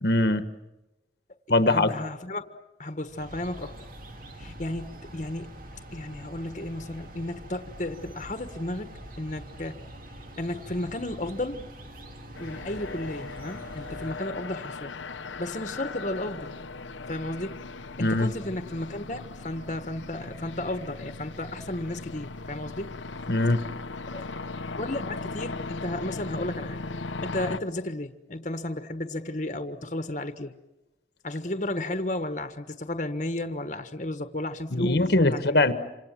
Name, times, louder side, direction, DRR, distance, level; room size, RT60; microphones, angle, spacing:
voice 1, 0.0-0.4 1.5-1.9 18.0-18.3 23.3-23.6 34.7-35.7, left 2 dB, 60° left, 10 dB, 1.4 m, -22 dB
voice 2, 1.7-3.8 4.4-5.5 5.9-8.9 9.2-9.8 10.3-11.6 12.4-14.9 15.4-16.6 17.1-17.6 18.0-23.0 24.1-24.3 24.8-26.8 27.2-30.5 31.2-35.7, left 1 dB, 40° left, 9 dB, 1.4 m, -33 dB
sound 1, 3.1-14.5, right 1 dB, 50° right, 2.6 m, -44 dB
sound 2, 12.4-27.6, left 3 dB, 90° left, 1.1 m, -38 dB
27.5 x 26.0 x 7.6 m, 1.0 s
head